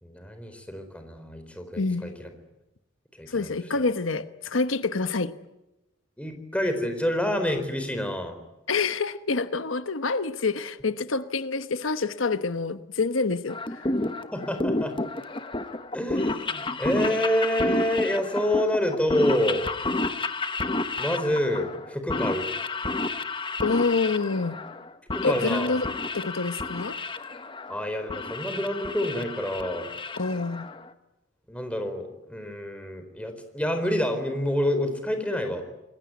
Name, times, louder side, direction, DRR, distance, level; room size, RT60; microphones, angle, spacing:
voice 1, 0.0-2.3 3.2-3.5 6.2-8.4 14.3-14.9 15.9-19.7 21.0-22.5 25.1-25.7 27.7-29.9 31.5-35.6, left 1 dB, 5° left, 7 dB, 4.2 m, -27 dB
voice 2, 1.8-2.1 3.3-5.3 8.7-13.9 23.6-24.6 25.2-27.0 30.2-30.7, left 3 dB, 90° left, 11 dB, 1.1 m, -27 dB
sound 1, 13.5-30.9, left 2 dB, 25° left, 1.2 m, -31 dB
27.5 x 21.5 x 9.5 m, 0.95 s
head